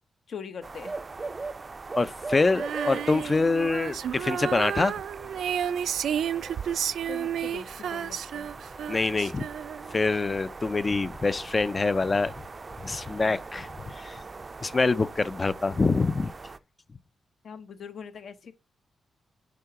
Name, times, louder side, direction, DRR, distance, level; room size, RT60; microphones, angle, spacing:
voice 1, 0.3-0.9 7.1-8.5 17.4-18.5, left 6 dB, 60° left, 1.1 m, -41 dB
sound 1, 0.6-16.6, right 3 dB, 30° right, 0.5 m, -40 dB
voice 2, 2.0-4.9 8.9-9.4 9.9-12.3 12.8-14.2 14.6-16.3, left 3 dB, 25° left, 0.5 m, -25 dB
Female singing, 2.5-10.0, right 9 dB, 85° right, 0.4 m, -32 dB
8.4 x 3.9 x 5.8 m
wide cardioid pair, 125°, 0 cm